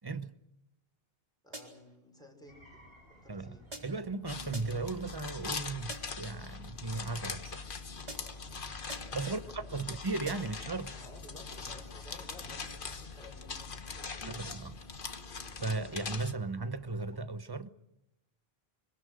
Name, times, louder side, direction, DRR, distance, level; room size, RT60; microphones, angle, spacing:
voice 1, 0.0-0.3 3.3-3.6 3.8-7.6 9.1-10.9 14.2-14.8 15.6-17.7, right 3 dB, 25° right, 0.9 m, -36 dB
voice 2, 1.4-2.8 3.2-3.7 9.2-10.0 10.4-10.5 10.9-14.5, left 1 dB, 5° left, 5.7 m, -54 dB
sound 1, 1.5-2.0 3.7-4.1 4.5-5.0 5.9-6.3 8.1-8.5 8.9-9.3 10.3-10.7, right 1 dB, 40° right, 4.3 m, -47 dB
sound 2, 2.5-17.2, equal, 70° right, 6.9 m, -59 dB
sound 3, 4.3-16.3, left 4 dB, 55° left, 1.4 m, -42 dB
25.5 x 24.0 x 6.5 m
omnidirectional pair, 1.0 m